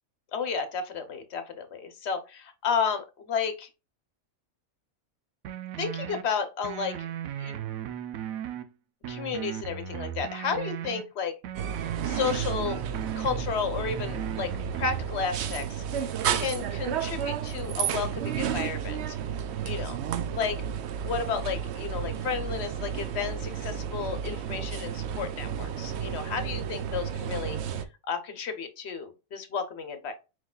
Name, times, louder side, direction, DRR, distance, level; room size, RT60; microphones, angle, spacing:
voice 1, 0.3-3.7 5.8-7.1 7.4-7.6 9.1-11.3 12.0-12.8 13.1-15.8 16.3-19.2 19.6-20.0 20.3-20.7 21.0-27.6 28.1-30.1, left 6 dB, 55° left, 8 dB, 1.0 m, -32 dB
sound 1, 5.4-6.2 6.6-8.6 9.0-11.0 11.4-13.4 13.8-15.0, right 9 dB, 85° right, 1.0 m, -36 dB
sound 2, 11.5-27.8, right 8 dB, 65° right, 0.7 m, -32 dB
4.7 x 4.0 x 2.3 m, 0.29 s
omnidirectional pair, 1.4 m